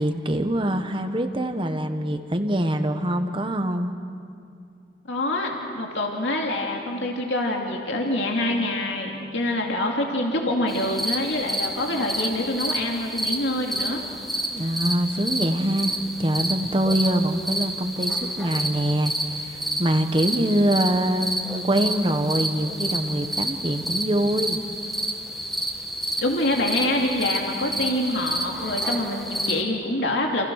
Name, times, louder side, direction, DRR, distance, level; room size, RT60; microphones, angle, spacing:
voice 1, 0.0-3.9 14.5-24.6, right 1 dB, 25° right, 7 dB, 1.2 m, -24 dB
voice 2, 5.1-14.0 26.2-30.5, left 1 dB, 70° left, 0 dB, 2.9 m, -26 dB
sound 1, 10.7-29.6, right 1 dB, ahead, 1.8 m, -30 dB
29.0 x 28.5 x 6.5 m, 2.4 s
head